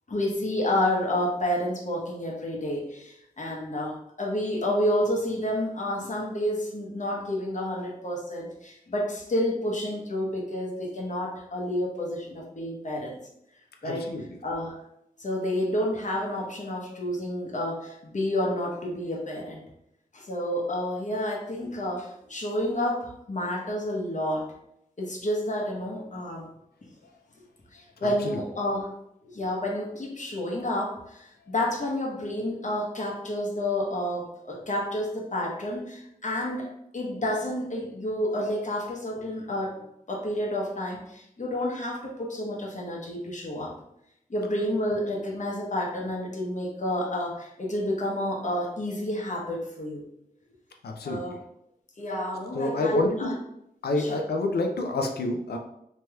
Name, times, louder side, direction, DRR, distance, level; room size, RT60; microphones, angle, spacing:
voice 1, 0.1-13.2 13.8-14.1 14.4-14.8 15.2-19.6 20.1-24.5 25.0-26.5 27.7-28.9 29.2-39.8 40.1-43.8 44.3-50.0 51.0-51.4 52.0-53.3 54.0-54.2, left 1 dB, 50° left, -2 dB, 0.9 m, -30 dB
voice 2, 13.8-14.2 28.0-28.4 50.8-51.4 52.5-53.4 53.8-55.6, left 2 dB, 85° left, 3 dB, 0.5 m, -28 dB
3.3 x 2.9 x 2.3 m, 0.79 s
cardioid pair, 50°, 16 cm